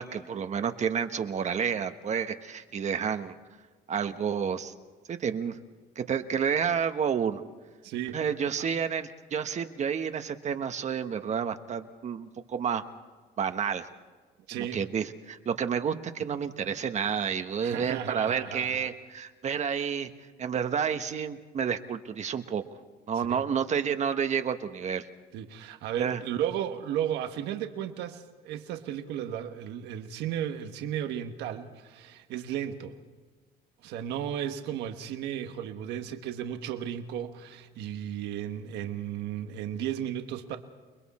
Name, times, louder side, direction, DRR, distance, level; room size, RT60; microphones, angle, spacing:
voice 1, 0.0-3.3 3.9-4.7 5.1-5.6 6.0-7.4 8.1-12.8 13.4-13.9 14.6-20.1 20.4-22.6 23.1-25.0 26.0-26.2, right 7 dB, 45° right, 8 dB, 1.2 m, -30 dB
voice 2, 7.8-8.3 8.6-8.7 14.5-14.8 17.6-18.9 23.2-23.4 25.3-33.0 33.8-40.6, right 10 dB, 85° right, 6 dB, 1.4 m, -34 dB
29.5 x 21.0 x 4.3 m, 1.4 s
cardioid pair, 110°, 17 cm